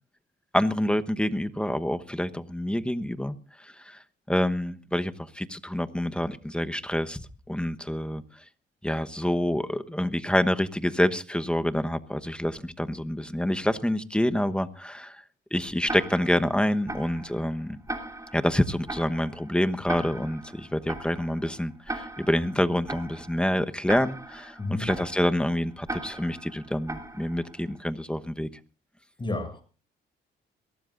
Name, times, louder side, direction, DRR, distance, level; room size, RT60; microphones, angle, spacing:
voice 1, 0.5-4.0 4.3-8.2 8.8-15.2 15.5-17.8 18.3-28.5, left 1 dB, 5° left, 1.1 m, -27 dB
Tick-tock, 15.9-27.7, right 2 dB, 15° right, 3.2 m, -39 dB
voice 2, 29.2-29.6, left 2 dB, 25° left, 6.7 m, -31 dB
22.5 x 18.0 x 2.6 m
cardioid pair, 90°, 20 cm